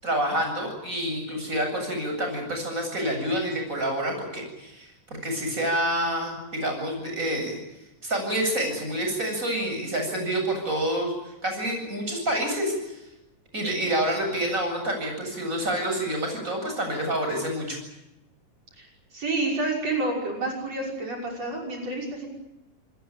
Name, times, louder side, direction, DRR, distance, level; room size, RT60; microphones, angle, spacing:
voice 1, 0.0-7.6 8.0-13.0 13.5-17.8, right 1 dB, 20° right, 3 dB, 8.4 m, -28 dB
voice 2, 19.1-22.3, right 2 dB, 50° right, 0 dB, 7.0 m, -29 dB
28.5 x 20.5 x 9.0 m, 0.94 s
omnidirectional pair, 3.9 m